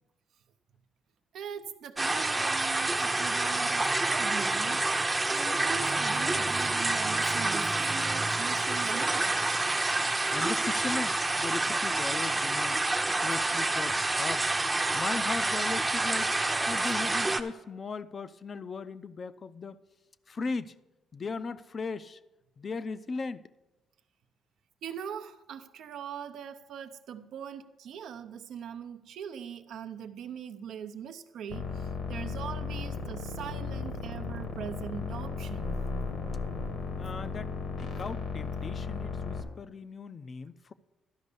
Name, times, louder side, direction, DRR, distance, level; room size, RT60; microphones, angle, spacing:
voice 1, 1.3-9.4 24.8-35.9, right 8 dB, 75° right, 0.6 m, -41 dB
sound 1, 2.0-17.4, right 2 dB, 20° right, 0.7 m, -28 dB
voice 2, 10.3-12.8 13.1-14.6 14.9-16.3 16.7-19.8 20.3-20.7 21.1-22.2 22.6-23.5 37.0-37.5 37.8-40.7, left 4 dB, 40° left, 0.4 m, -37 dB
sound 2, 31.5-39.4, left 4 dB, 75° left, 1.5 m, -35 dB
12.0 x 5.3 x 6.7 m
cardioid pair, 90°, 0 cm